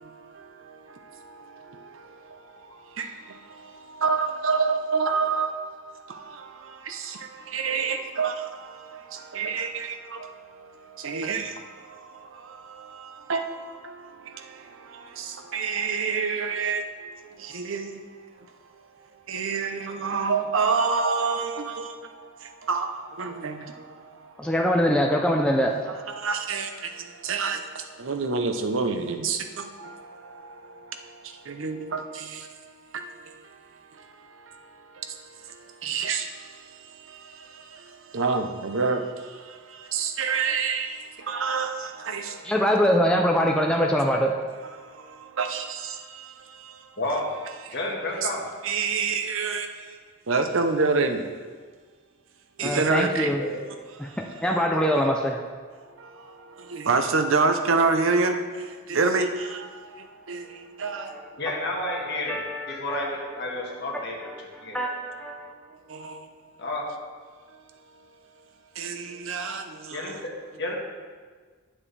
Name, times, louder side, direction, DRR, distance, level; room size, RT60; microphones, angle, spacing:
voice 1, 0.0-24.5 25.9-42.5 44.7-47.0 47.6-47.8 48.2-48.3 48.6-50.0 50.3-51.3 52.6-53.3 53.9-54.4 55.8-61.4 65.6-66.3 67.5-68.2 68.7-70.3, right 4 dB, 75° right, 0.7 m, -29 dB
voice 2, 24.4-25.7 42.4-44.4 52.6-53.4 54.0-55.4 61.0-61.2 61.5-63.3 64.2-65.5, equal, 5° left, 0.4 m, -24 dB
voice 3, 47.0-47.3 47.7-48.4 53.3-53.6 61.4-62.4 62.7-64.3 64.6-64.8 66.6-66.9 69.9-70.8, left 2 dB, 55° left, 1.5 m, -31 dB
10.5 x 7.4 x 3.3 m
head